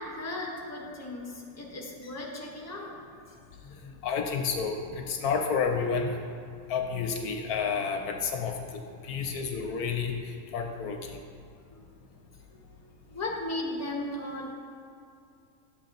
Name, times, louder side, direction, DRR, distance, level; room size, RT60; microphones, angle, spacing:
voice 1, 0.0-3.0 3.3-3.4 3.6-3.9 11.7-11.8 12.5-12.6 13.1-14.5, left 2 dB, 10° left, -2 dB, 1.0 m, -36 dB
voice 2, 4.0-6.2 6.7-10.2 10.5-11.2, left 5 dB, 75° left, 4 dB, 1.1 m, -30 dB
10.0 x 7.9 x 3.0 m, 2.4 s
omnidirectional pair, 1.7 m